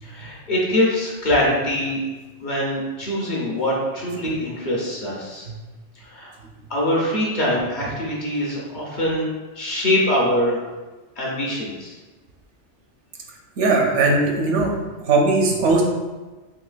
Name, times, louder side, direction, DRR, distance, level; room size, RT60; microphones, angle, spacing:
voice 1, 0.0-2.0 2.4-5.5 6.0-6.3 6.7-9.3 9.6-10.6 11.2-11.9, left 1 dB, 50° left, -4 dB, 0.7 m, -23 dB
voice 2, 13.6-14.7 15.1-15.8, right 3 dB, 80° right, 1 dB, 0.9 m, -18 dB
3.8 x 2.7 x 2.4 m, 1.2 s
omnidirectional pair, 1.2 m